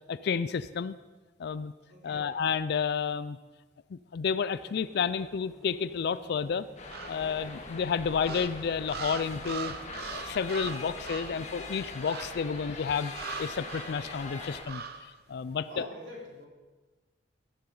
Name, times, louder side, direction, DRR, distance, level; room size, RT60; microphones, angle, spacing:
voice 1, 0.1-0.9 1.4-1.7 2.0-3.4 3.9-6.7 7.1-9.7 10.1-13.1 13.4-15.9, left 6 dB, 60° left, 15 dB, 0.4 m, -31 dB
voice 2, 1.9-2.3 15.6-16.5, left 1 dB, 90° right, -4 dB, 3.8 m, -45 dB
sound 1, 4.5-12.0, equal, 5° right, 1.6 m, -55 dB
sound 2, 6.8-14.6, left 3 dB, 40° left, 2.0 m, -42 dB
sound 3, 6.9-7.5 8.2-11.5 12.0-12.5 13.1-14.0 14.7-15.1, right 5 dB, 60° right, 0.8 m, -41 dB
16.0 x 12.5 x 3.9 m, 1.3 s
head